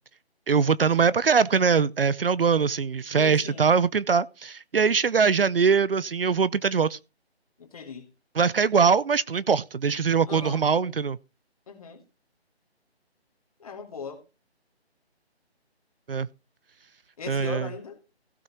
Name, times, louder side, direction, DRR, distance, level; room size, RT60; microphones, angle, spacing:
voice 1, 0.5-7.0 8.4-11.2 16.1-16.3 17.3-17.7, right 6 dB, 60° right, 0.6 m, -22 dB
voice 2, 3.2-3.7 7.6-8.1 10.3-10.6 11.7-12.0 13.6-14.2 17.2-18.0, left 5 dB, 35° left, 2.5 m, -38 dB
16.0 x 6.4 x 4.4 m
hypercardioid pair, 170°, 33 cm